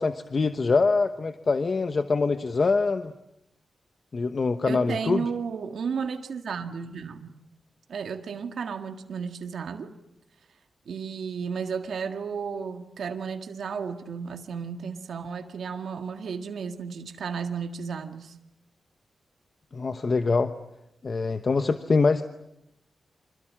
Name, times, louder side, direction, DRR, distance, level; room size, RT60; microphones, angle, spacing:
voice 1, 0.0-3.1 4.1-5.3 19.7-20.5 21.0-22.3, left 4 dB, 40° left, 1.0 m, -24 dB
voice 2, 4.7-7.4 7.9-9.9 10.9-18.4, right 6 dB, 80° right, 1.8 m, -33 dB
30.0 x 25.5 x 7.5 m
wide cardioid pair, 125°, 0 cm